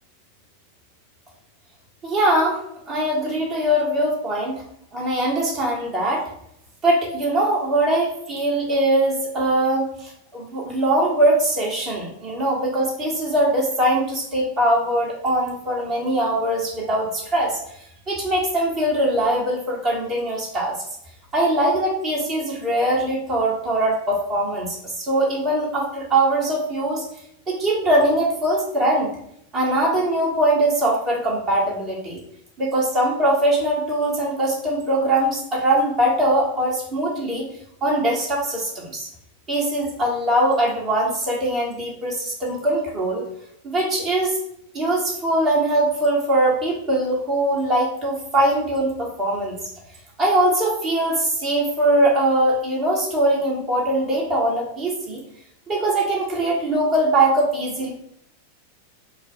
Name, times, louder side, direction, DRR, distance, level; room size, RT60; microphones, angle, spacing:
voice 1, 2.0-4.6 4.9-6.2 6.8-17.6 18.1-20.7 21.3-27.0 27.5-29.1 29.5-32.2 32.6-37.5 37.8-39.1 39.5-43.3 43.6-44.4 44.7-49.6 50.2-55.2 55.7-57.9, right 1 dB, 25° right, -4 dB, 1.6 m, -21 dB
4.6 x 2.3 x 4.4 m, 0.74 s
figure-of-eight pair, 90°, 0 cm